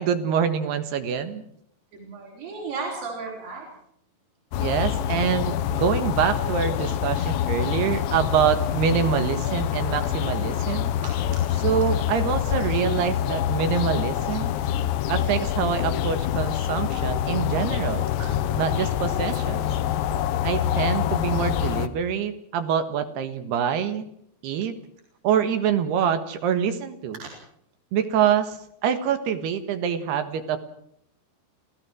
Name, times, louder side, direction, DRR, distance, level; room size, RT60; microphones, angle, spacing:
voice 1, 0.0-1.4 4.6-10.9 11.6-14.6 15.1-18.1 18.6-19.7 20.4-24.1 24.4-24.7 25.2-27.2 27.9-28.6 28.8-30.6, right 8 dB, 70° right, 9 dB, 3.5 m, -25 dB
voice 2, 1.9-3.7 11.0-11.1 18.2-18.3 27.2-27.3, right 4 dB, 55° right, -3 dB, 6.3 m, -34 dB
sound 1, 4.5-21.9, left 10 dB, 90° left, 3.4 m, -26 dB
28.5 x 17.0 x 6.3 m, 0.70 s
omnidirectional pair, 5.0 m